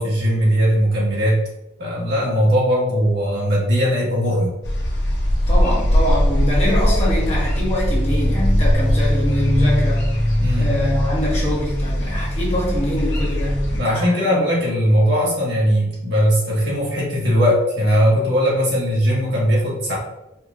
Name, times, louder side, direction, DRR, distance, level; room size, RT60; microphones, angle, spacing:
voice 1, 0.0-1.4 1.8-4.5 10.4-10.7 13.8-19.9, equal, 65° right, -5 dB, 1.4 m, -19 dB
sound 1, 4.6-13.8, equal, 65° left, 1.1 m, -20 dB
voice 2, 5.5-10.1 10.6-14.2, left 1 dB, 35° left, -5 dB, 1.2 m, -23 dB
4.4 x 2.9 x 2.4 m, 0.89 s
head